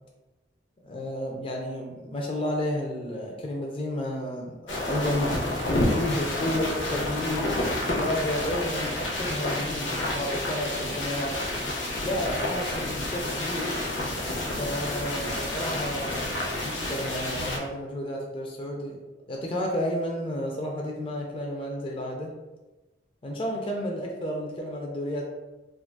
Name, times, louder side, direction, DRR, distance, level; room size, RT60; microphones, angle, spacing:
voice 1, 0.8-5.4 5.7-11.4 12.0-13.8 14.6-19.0 19.3-22.3 23.2-25.2, left 1 dB, 30° left, -1 dB, 0.4 m, -31 dB
sound 1, 4.7-17.6, left 1 dB, 80° left, 0.6 m, -29 dB
3.5 x 2.4 x 2.2 m, 1.1 s
head